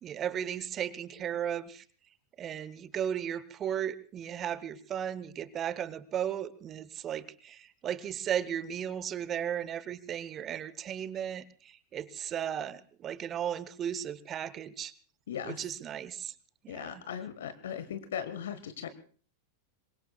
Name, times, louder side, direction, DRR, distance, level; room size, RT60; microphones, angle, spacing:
voice 1, 0.0-1.8 2.4-14.9 15.4-16.3 16.6-17.0, right 9 dB, 30° right, 18 dB, 1.0 m, -35 dB
voice 2, 15.3-15.6 16.7-18.9, left 8 dB, 60° left, 11 dB, 1.3 m, -38 dB
26.0 x 22.5 x 2.4 m, 0.42 s
figure-of-eight pair, 90°, 0 cm